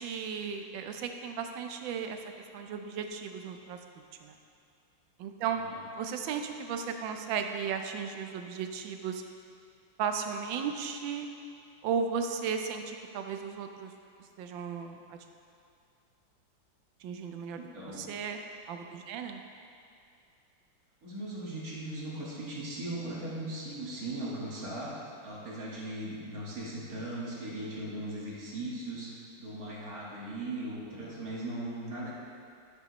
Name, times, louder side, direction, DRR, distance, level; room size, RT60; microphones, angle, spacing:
voice 1, 0.0-2.2 2.5-3.8 4.2-4.3 5.2-5.6 5.9-9.2 10.0-11.3 11.8-13.9 14.4-15.2 17.0-18.4 18.7-19.4, right 6 dB, 80° right, 5 dB, 1.3 m, -35 dB
voice 2, 17.6-18.1 21.0-32.2, right 1 dB, 50° right, -6 dB, 1.9 m, -38 dB
11.5 x 7.7 x 3.0 m, 2.4 s
omnidirectional pair, 2.1 m